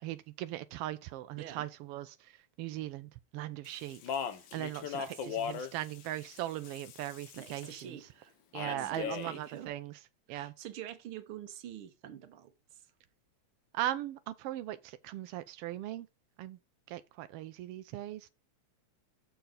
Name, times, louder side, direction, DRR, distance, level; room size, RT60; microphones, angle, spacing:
voice 1, 0.0-2.3 2.6-4.0 4.5-5.0 5.3-8.0 8.5-9.9 10.3-10.5 13.7-16.1 16.4-16.6 16.9-18.3, right 14 dB, 85° right, 1.3 m, -39 dB
voice 2, 1.4-1.7 5.0-5.3 7.4-8.3 8.7-9.7 10.3-12.9, right 10 dB, 60° right, 1.5 m, -46 dB
Speech, 3.6-7.8 8.5-9.4, left 7 dB, 90° left, 1.0 m, -39 dB
7.0 x 5.2 x 5.6 m
omnidirectional pair, 3.3 m